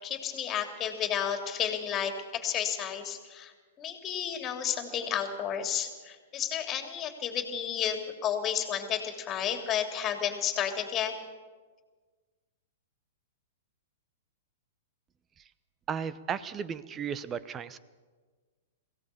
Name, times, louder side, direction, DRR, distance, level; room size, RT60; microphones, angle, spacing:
voice 1, 0.0-11.1, left 9 dB, 25° left, 5 dB, 3.0 m, -32 dB
voice 2, 15.9-17.8, right 7 dB, 20° right, 16 dB, 0.9 m, -35 dB
23.0 x 16.5 x 7.0 m, 1.4 s
figure-of-eight pair, 105°, 0 cm